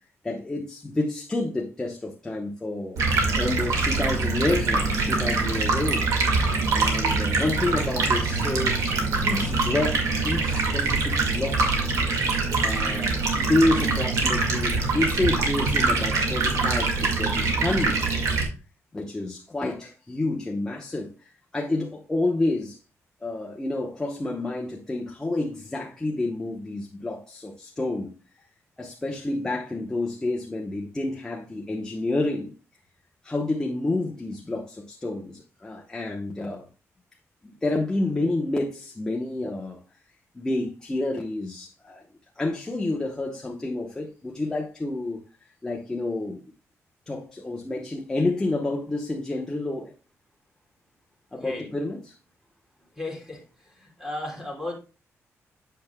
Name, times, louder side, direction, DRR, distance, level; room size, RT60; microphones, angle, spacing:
voice 1, 0.2-3.0 3.4-6.1 6.7-8.8 9.2-11.8 12.6-18.2 18.9-22.8 23.2-28.1 28.8-32.5 33.2-36.6 37.4-39.8 40.3-42.0 42.4-45.2 45.6-46.4 47.1-49.9 51.3-52.1, left 2 dB, 15° left, 0.9 m, -29 dB
Stream, 3.0-18.4, right 3 dB, 85° right, 1.9 m, -24 dB
voice 2, 53.0-53.4 53.8-54.7, left 2 dB, 10° right, 3.0 m, -34 dB
8.5 x 7.1 x 2.2 m
wide cardioid pair, 155°, 5 cm